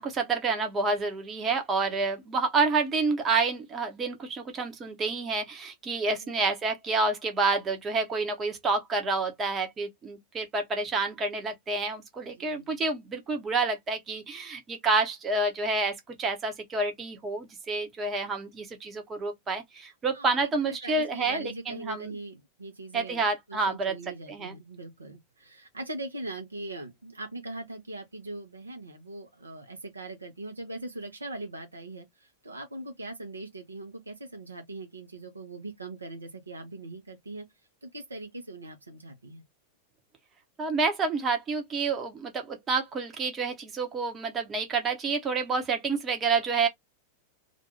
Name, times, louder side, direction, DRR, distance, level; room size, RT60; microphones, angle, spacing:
voice 1, 0.0-22.1 22.9-23.9 24.3-24.5 40.6-46.7, right 3 dB, 25° right, 0.8 m, -29 dB
voice 2, 12.2-12.8 20.1-37.5 37.8-39.4, right 2 dB, 80° right, 0.7 m, -41 dB
2.5 x 2.3 x 2.9 m
figure-of-eight pair, 90°, 0 cm